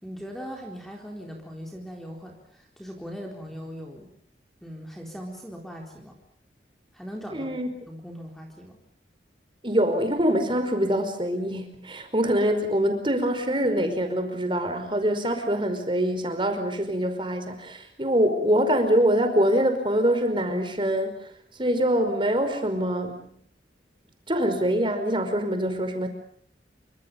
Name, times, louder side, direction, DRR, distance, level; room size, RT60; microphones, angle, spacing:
voice 1, 0.0-4.1 4.6-6.2 6.9-8.8, equal, ahead, 1 dB, 4.1 m, -40 dB
voice 2, 7.3-7.7 9.6-21.3 21.6-23.3 24.3-26.1, equal, 30° right, 7 dB, 5.1 m, -24 dB
28.5 x 25.5 x 5.4 m, 0.63 s
head